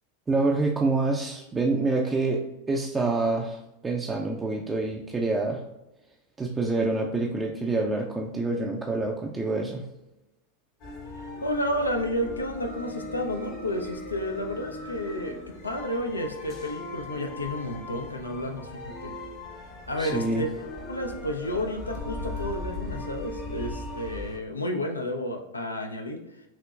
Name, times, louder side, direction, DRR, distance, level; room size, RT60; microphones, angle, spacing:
voice 1, 0.3-2.4 2.7-5.6 6.4-9.8 20.0-20.4, right 3 dB, 15° right, 0 dB, 0.4 m, -27 dB
sound 1, 10.8-24.4, left 2 dB, 45° left, 0.9 m, -38 dB
voice 2, 11.2-15.4 15.6-19.1 19.9-20.5 20.9-26.3, left 1 dB, 85° left, 4 dB, 0.6 m, -31 dB
5.8 x 2.8 x 2.4 m, 0.92 s
figure-of-eight pair, 90°, 0 cm